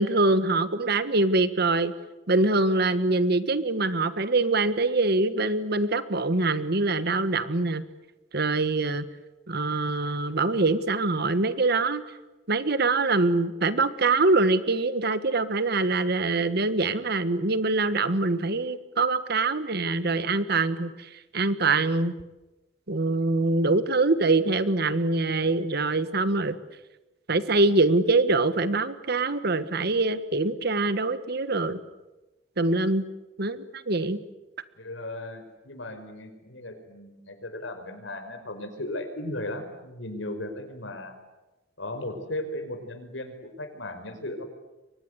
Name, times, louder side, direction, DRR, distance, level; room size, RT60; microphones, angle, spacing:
voice 1, 0.0-1.9 2.3-7.8 8.3-9.0 9.5-12.0 12.5-22.1 22.9-26.6 27.3-31.8 32.6-33.0 33.4-34.2, right 3 dB, 55° right, 13 dB, 1.5 m, -24 dB
voice 2, 34.8-41.1 41.8-44.4, left 1 dB, 75° left, 7 dB, 5.3 m, -36 dB
30.0 x 24.0 x 8.1 m, 1.1 s
head